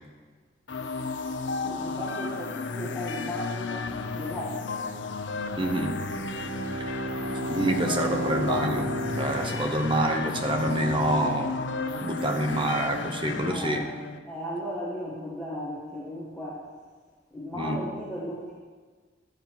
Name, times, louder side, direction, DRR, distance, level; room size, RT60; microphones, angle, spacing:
sound 1, 0.7-14.2, left 4 dB, 65° left, 0.6 m, -33 dB
voice 1, 1.6-4.6 13.5-13.8 14.2-16.6 17.3-18.5, equal, 5° left, -8 dB, 1.5 m, -35 dB
voice 2, 5.6-6.0 7.5-8.9 9.2-11.6 12.0-13.9 17.6-17.9, right 1 dB, 25° right, 4 dB, 0.9 m, -27 dB
Bowed string instrument, 6.0-10.3, right 1 dB, 75° right, 2.1 m, -33 dB
12.0 x 7.6 x 4.7 m, 1.5 s
head